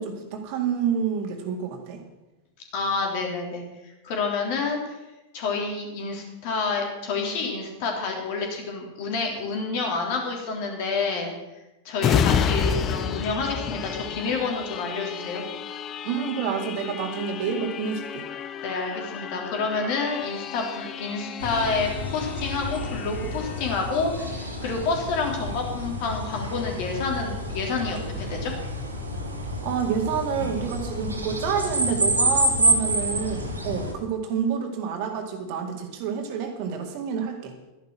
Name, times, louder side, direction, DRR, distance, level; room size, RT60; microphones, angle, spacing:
voice 1, 0.0-2.0 16.0-18.3 29.6-37.5, right 7 dB, 45° right, 4 dB, 2.0 m, -28 dB
voice 2, 2.7-5.0 5.3-11.3 11.8-15.4 18.6-28.5, left 4 dB, 45° left, 1 dB, 3.3 m, -28 dB
sound 1, 12.0-25.3 25.8-25.9, left 7 dB, 30° left, 0.7 m, -31 dB
sound 2, 21.4-33.9, right 1 dB, 80° right, 2.3 m, -28 dB
12.5 x 11.0 x 6.2 m, 1.0 s
figure-of-eight pair, 90°, 0 cm